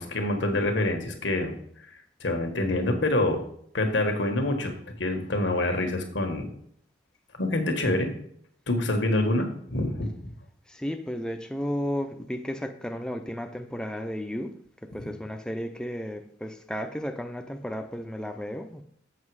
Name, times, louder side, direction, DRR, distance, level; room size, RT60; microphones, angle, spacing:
voice 1, 0.0-1.5 2.2-3.4 3.7-6.5 7.4-8.1 8.7-10.1, left 1 dB, 75° left, 1.5 m, -26 dB
voice 2, 10.7-14.5 14.9-18.8, equal, 5° left, 0.5 m, -33 dB
7.4 x 5.9 x 4.8 m
head